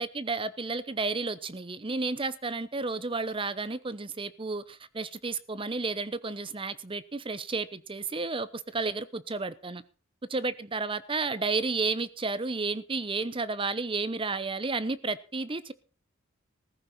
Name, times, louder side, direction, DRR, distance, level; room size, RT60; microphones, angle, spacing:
voice 1, 0.0-9.8 10.3-15.7, right 3 dB, 25° right, 16 dB, 0.8 m, -32 dB
16.0 x 14.5 x 4.3 m, 0.35 s
head